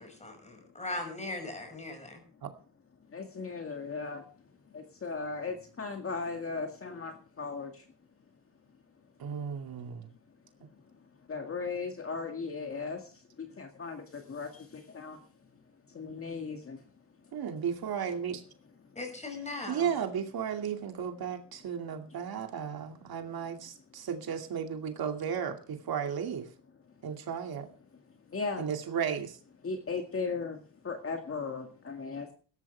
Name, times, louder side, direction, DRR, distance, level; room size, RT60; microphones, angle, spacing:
voice 1, 0.0-2.2 19.0-19.9, left 2 dB, 15° left, 5 dB, 5.9 m, -39 dB
voice 2, 3.1-4.2 4.7-7.9 11.3-15.2 15.9-16.8 18.9-19.0 28.3-28.7 29.6-32.3, left 4 dB, 35° left, 4 dB, 2.0 m, -37 dB
voice 3, 9.2-10.1 17.3-18.4 19.7-26.5 27.0-27.7 28.6-29.4, right 7 dB, 60° right, 5 dB, 2.5 m, -34 dB
19.0 x 13.5 x 3.4 m, 0.39 s
cardioid pair, 155°, 41 cm